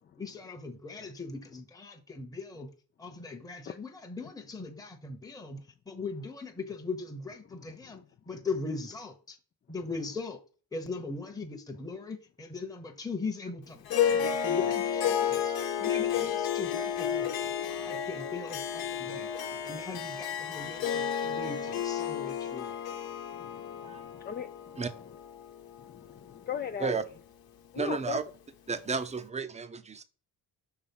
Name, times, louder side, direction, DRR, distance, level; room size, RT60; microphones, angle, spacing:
voice 1, 0.2-2.7 3.0-9.4 9.7-10.4 10.7-17.3 17.6-19.3 19.6-22.7, left 4 dB, 10° left, 1.0 m, -40 dB
voice 2, 7.6-8.0 14.0-14.2 17.4-17.9 19.0-19.3 19.5-19.6 20.6-20.7 23.3-24.8 25.8-27.0 27.7-28.2, left 8 dB, 25° left, 0.4 m, -41 dB
Harp, 13.9-26.4, left 8 dB, 65° left, 1.1 m, -32 dB
voice 3, 27.8-28.2 28.7-30.0, right 5 dB, 20° right, 0.7 m, -32 dB
5.7 x 3.4 x 5.3 m
cardioid pair, 100°, 38 cm